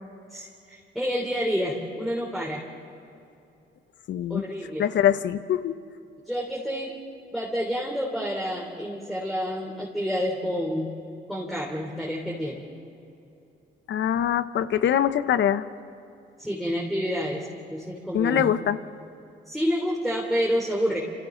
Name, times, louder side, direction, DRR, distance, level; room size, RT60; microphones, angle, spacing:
voice 1, 0.3-2.6 4.3-4.8 6.2-7.0 7.3-10.9 11.3-12.7 16.4-18.5 19.5-21.0, equal, ahead, -3 dB, 3.3 m, -29 dB
voice 2, 4.1-4.4 4.8-5.8 13.9-15.6 18.1-18.8, left 9 dB, 65° left, 12 dB, 0.9 m, -23 dB
29.0 x 28.0 x 3.9 m, 2.7 s
cardioid pair, 90°, 20 cm